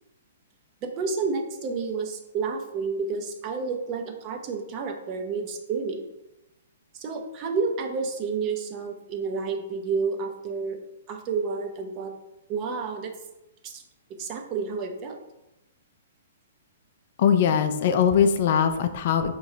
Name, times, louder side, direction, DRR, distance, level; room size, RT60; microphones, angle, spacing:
voice 1, 0.8-6.0 6.9-10.8 11.1-12.1 12.5-13.1 13.6-13.8 14.2-15.2, right 4 dB, 35° right, 4 dB, 0.6 m, -30 dB
voice 2, 17.2-19.3, left 7 dB, 55° left, 8 dB, 0.4 m, -21 dB
4.6 x 3.0 x 2.7 m, 0.93 s
hypercardioid pair, 125°, 0 cm